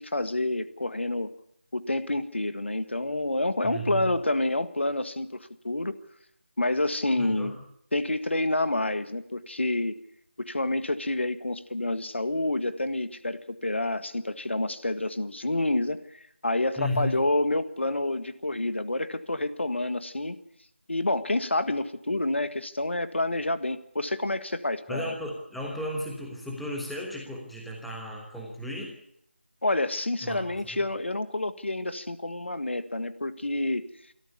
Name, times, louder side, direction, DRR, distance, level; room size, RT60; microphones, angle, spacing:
voice 1, 0.0-1.3 1.7-5.4 5.6-6.0 6.6-7.6 7.9-10.0 10.4-20.4 20.9-25.1 29.6-33.9, left 2 dB, 70° left, 11 dB, 1.7 m, -28 dB
voice 2, 3.6-4.1 7.2-7.5 16.8-17.1 24.9-29.0 30.2-30.8, left 1 dB, ahead, -2 dB, 1.1 m, -34 dB
26.0 x 13.5 x 8.2 m, 0.73 s
figure-of-eight pair, 170°, 7 cm